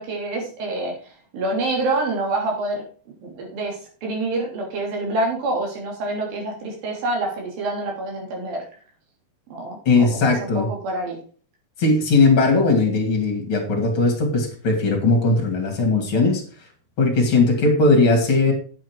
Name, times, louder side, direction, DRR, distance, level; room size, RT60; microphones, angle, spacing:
voice 1, 0.0-2.8 3.2-8.6 9.5-11.2, right 2 dB, 65° right, -1 dB, 4.9 m, -27 dB
voice 2, 9.8-10.7 11.8-16.4 17.0-18.5, left 3 dB, 35° left, 1 dB, 3.0 m, -18 dB
9.0 x 8.1 x 4.8 m, 0.41 s
omnidirectional pair, 4.4 m